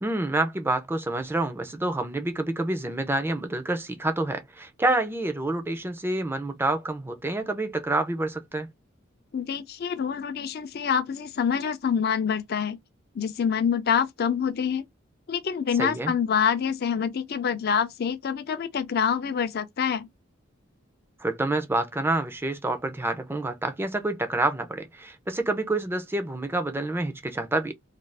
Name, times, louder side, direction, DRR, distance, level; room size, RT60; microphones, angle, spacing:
voice 1, 0.0-8.7 15.8-16.1 21.2-27.7, right 2 dB, 10° right, 0.4 m, -28 dB
voice 2, 9.3-12.8 13.1-14.9 15.3-20.1, left 7 dB, 50° left, 0.4 m, -26 dB
2.5 x 2.3 x 3.2 m
head